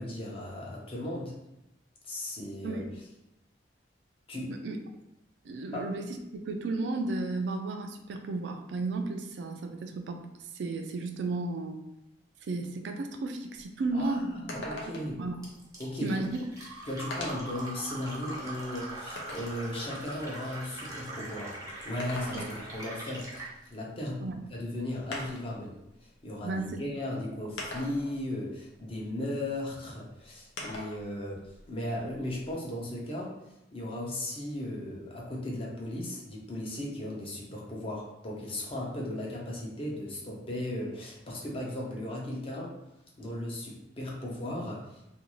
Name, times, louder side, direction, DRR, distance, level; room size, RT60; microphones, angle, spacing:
voice 1, 0.0-1.3 2.0-2.8 4.3-4.5 5.7-5.9 13.9-15.2 15.8-16.1 16.9-23.3 23.7-33.4 33.7-42.8 43.2-45.0, left 1 dB, 30° left, -3 dB, 0.6 m, -36 dB
voice 2, 2.6-2.9 4.5-4.8 5.4-10.3 10.5-11.8 12.4-14.4 14.9-15.4 16.0-16.3 22.3-22.4 24.2-24.3 26.4-26.8, right 3 dB, 65° right, 5 dB, 0.3 m, -33 dB
sound 1, 13.6-13.7 14.0-14.1 14.5-15.2 16.3-16.4 17.1-17.6 18.2-19.6 21.8-22.8 24.3-24.4 25.1-25.6 26.6-26.7 27.6-28.2 30.6-31.0 31.4-32.5, left 1 dB, 85° left, 0.6 m, -40 dB
Fill (with liquid), 15.4-23.5, right 1 dB, 20° right, 0.6 m, -42 dB
2.5 x 2.3 x 2.9 m, 0.90 s
head